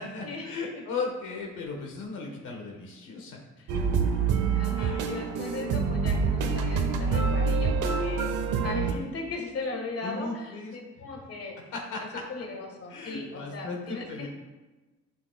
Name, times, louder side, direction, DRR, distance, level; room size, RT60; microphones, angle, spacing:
voice 1, 0.0-3.4 4.8-5.0 10.0-11.0 11.7-12.2 12.9-14.3, left 4 dB, 85° left, 0 dB, 1.4 m, -36 dB
sound 1, 3.7-8.9, right 5 dB, 90° right, 0.9 m, -26 dB
voice 2, 4.5-8.3 8.6-11.5 12.3-14.3, left 3 dB, 50° left, 1 dB, 1.7 m, -38 dB
11.0 x 5.8 x 2.4 m, 1.2 s
cardioid pair, 90°, 30 cm